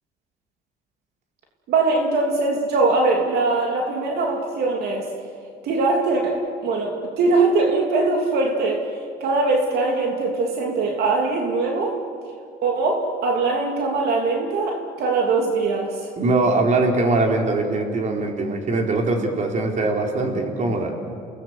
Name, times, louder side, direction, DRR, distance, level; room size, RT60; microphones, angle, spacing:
voice 1, 1.7-5.1 5.6-8.8 9.2-12.0 12.6-16.0, right 3 dB, 70° right, 1 dB, 3.1 m, -21 dB
voice 2, 16.2-20.9, right 2 dB, 45° right, 2 dB, 4.1 m, -22 dB
29.5 x 19.0 x 8.1 m, 2.2 s
cardioid pair, 110°, 17 cm